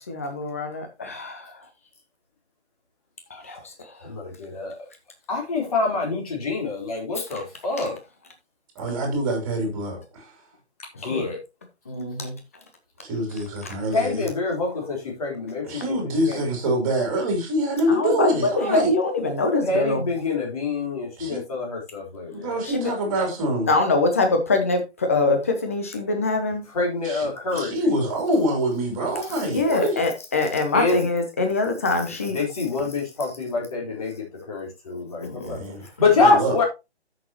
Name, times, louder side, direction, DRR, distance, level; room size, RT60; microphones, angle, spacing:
voice 1, 0.1-1.6 3.3-3.9 7.2-7.4 7.8-7.9 10.9-11.3 11.9-12.4 13.6-13.7 17.9-20.1 22.6-22.9 23.7-26.6 29.3-32.4 35.2-35.6, left 3 dB, 15° left, 0.7 m, -24 dB
voice 2, 4.0-4.7 5.3-8.0 11.0-11.4 13.9-15.8 16.3-16.4 19.7-22.6 26.7-27.8 30.7-31.1 32.3-35.6 36.0-36.6, left 3 dB, 35° left, 4.0 m, -25 dB
voice 3, 8.7-10.3 13.0-14.3 15.6-18.9 21.2-21.4 22.3-23.7 27.0-27.3 27.5-30.0 35.4-35.9 36.2-36.5, right 1 dB, 15° right, 3.1 m, -25 dB
14.0 x 6.4 x 2.9 m
figure-of-eight pair, 150°, 34 cm